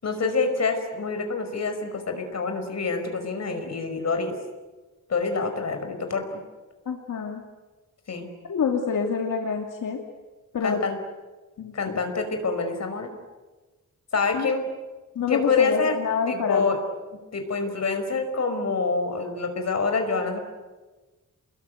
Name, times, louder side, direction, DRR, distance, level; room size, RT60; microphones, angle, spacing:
voice 1, 0.0-4.4 5.1-6.4 8.1-8.3 10.6-11.0 11.7-13.1 14.1-14.6 15.3-16.0 16.3-16.8 17.3-20.4, left 4 dB, 55° left, 6 dB, 5.3 m, -26 dB
voice 2, 6.9-7.4 8.5-10.0 10.5-10.8 11.6-11.7 14.3-14.5 15.1-16.7, left 6 dB, 80° left, 2 dB, 2.7 m, -26 dB
29.0 x 21.5 x 9.3 m, 1.3 s
wide cardioid pair, 130°, 31 cm